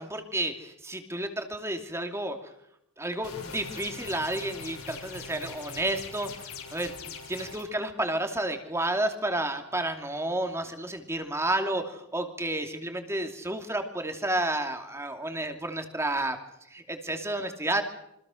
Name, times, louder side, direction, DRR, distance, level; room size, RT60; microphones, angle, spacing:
voice 1, 0.0-2.5 3.0-16.4 16.7-17.8, right 1 dB, 10° right, 5 dB, 2.7 m, -31 dB
sound 1, 3.2-7.6, left 5 dB, 75° left, 6.5 m, -42 dB
27.5 x 25.0 x 6.5 m, 0.80 s
head